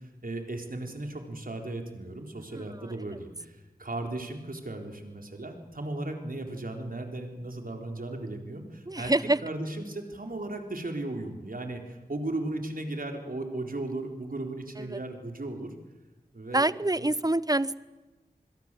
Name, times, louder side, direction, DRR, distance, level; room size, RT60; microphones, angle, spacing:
voice 1, 0.2-9.1 9.4-15.7 16.3-17.1, right 2 dB, 60° right, 3 dB, 4.1 m, -36 dB
voice 2, 2.5-2.9 8.9-9.4 14.8-15.0 16.5-17.8, right 2 dB, 25° right, 18 dB, 0.9 m, -26 dB
27.0 x 21.5 x 7.7 m, 1.1 s
cardioid pair, 40°, 16 cm